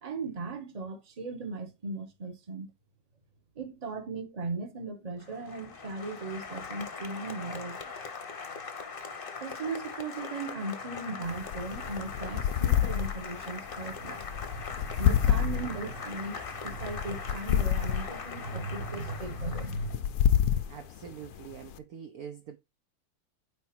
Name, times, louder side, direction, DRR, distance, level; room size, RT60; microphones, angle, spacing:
voice 1, 0.0-2.7 3.5-7.9 9.4-20.0, right 3 dB, 25° right, 1.0 m, -37 dB
Applause, 5.2-20.0, left 5 dB, 35° left, 0.9 m, -41 dB
sound 1, 11.2-21.8, left 10 dB, 70° left, 0.9 m, -29 dB
voice 2, 20.7-22.6, right 8 dB, 60° right, 1.0 m, -44 dB
9.5 x 3.4 x 4.5 m
omnidirectional pair, 2.3 m